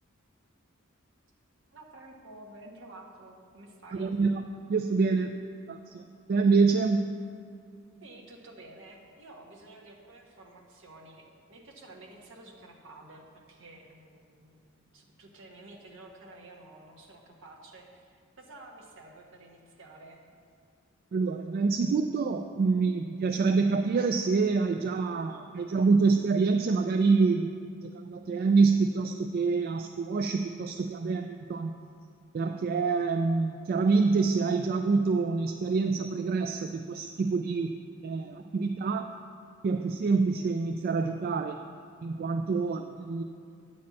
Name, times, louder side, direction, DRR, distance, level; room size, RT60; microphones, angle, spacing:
voice 1, 1.7-4.1 8.0-14.7 14.9-20.2, right 2 dB, 65° right, 0 dB, 1.2 m, -51 dB
voice 2, 3.9-4.4 4.7-5.4 5.7-7.1 21.1-27.5 27.8-31.7 32.3-37.7 38.0-39.1 39.6-41.6 42.0-43.2, right 4 dB, 45° right, 6 dB, 0.3 m, -26 dB
9.6 x 4.3 x 7.3 m, 2.3 s
head